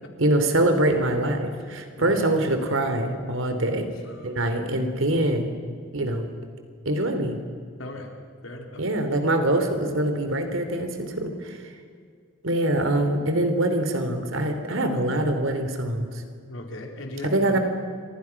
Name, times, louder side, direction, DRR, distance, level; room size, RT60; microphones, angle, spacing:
voice 1, 0.2-3.9 4.2-5.5 5.9-6.2 6.8-7.4 8.8-11.6 12.4-16.1 17.2-17.6, right 1 dB, 75° right, 7 dB, 3.2 m, -24 dB
voice 2, 1.4-2.2 4.0-4.3 7.8-8.1 8.4-8.8 16.5-17.6, left 1 dB, 70° left, 2 dB, 4.2 m, -38 dB
30.0 x 26.0 x 6.0 m, 2.1 s
head